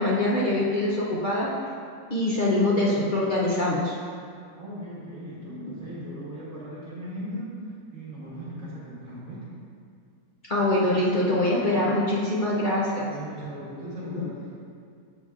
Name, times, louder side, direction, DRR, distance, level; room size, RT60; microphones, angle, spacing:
voice 1, 0.0-1.5 2.1-4.0 5.6-5.7 10.5-13.1 14.2-14.3, left 1 dB, 50° left, -6 dB, 0.6 m, -24 dB
voice 2, 4.5-9.4 13.1-14.5, right 1 dB, 55° right, -8 dB, 1.6 m, -38 dB
7.1 x 6.8 x 2.4 m, 2.3 s
omnidirectional pair, 1.7 m